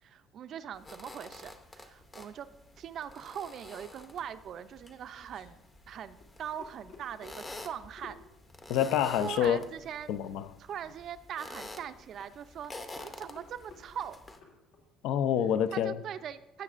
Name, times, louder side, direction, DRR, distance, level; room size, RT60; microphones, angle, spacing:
voice 1, 0.0-2.5 2.8-5.6 5.9-8.2 9.0-10.1 10.6-12.7 13.0-14.2 15.7-16.6, right 9 dB, 40° right, 0.4 m, -41 dB
sound 1, 0.7-14.4, left 2 dB, 15° left, 0.6 m, -49 dB
sound 2, 4.5-14.9, left 5 dB, 85° left, 2.3 m, -56 dB
voice 2, 8.7-9.6 10.1-10.5 15.0-16.0, left 9 dB, 70° left, 0.4 m, -27 dB
16.0 x 7.4 x 2.5 m
cardioid pair, 165°, 0 cm